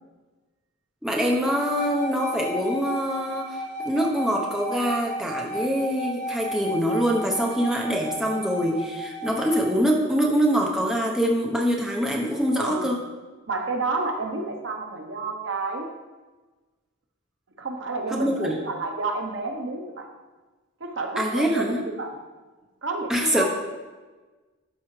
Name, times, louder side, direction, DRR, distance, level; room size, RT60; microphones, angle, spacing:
voice 1, 1.0-13.0 18.1-18.6 21.2-21.8 23.1-23.4, equal, 5° right, -2 dB, 0.8 m, -24 dB
sound 1, 1.4-9.7, equal, 35° left, 1.2 m, -34 dB
voice 2, 12.6-12.9 13.5-15.9 17.6-20.1 20.8-22.1 22.8-23.4, right 3 dB, 60° right, 3 dB, 0.9 m, -30 dB
12.0 x 4.8 x 3.2 m, 1.3 s
head